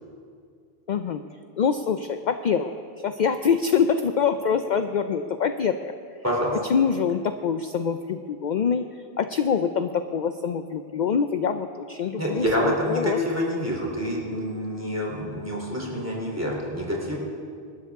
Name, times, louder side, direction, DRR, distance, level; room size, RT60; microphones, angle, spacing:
voice 1, 0.9-1.2 1.6-5.9 6.7-13.2, left 6 dB, 55° left, 8 dB, 0.6 m, -25 dB
voice 2, 6.2-6.6 12.2-17.2, equal, 15° right, -3 dB, 3.3 m, -27 dB
26.0 x 13.0 x 3.6 m, 2.3 s
omnidirectional pair, 1.0 m